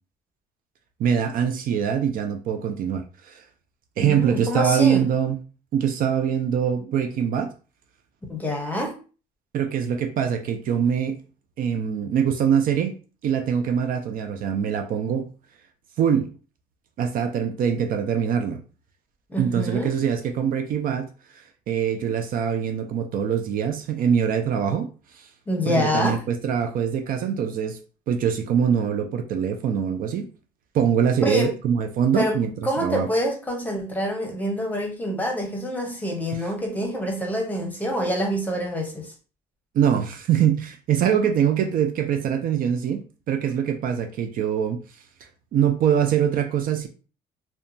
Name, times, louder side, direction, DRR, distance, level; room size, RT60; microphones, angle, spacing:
voice 1, 1.0-3.4 4.0-5.4 5.7-7.5 9.5-11.2 11.6-12.9 13.2-15.3 16.0-16.3 17.0-18.6 19.4-21.1 21.4-25.3 25.7-27.8 28.1-30.3 30.7-32.5 32.8-33.1 39.7-43.0 43.3-44.8 45.5-46.9, right 8 dB, 55° right, 0.4 m, -23 dB
voice 2, 4.0-5.1 8.3-8.9 19.3-19.9 25.5-26.2 31.2-31.5 32.1-32.4 32.6-39.1, equal, 10° left, 0.8 m, -26 dB
2.7 x 2.2 x 2.5 m
cardioid pair, 110°, 17 cm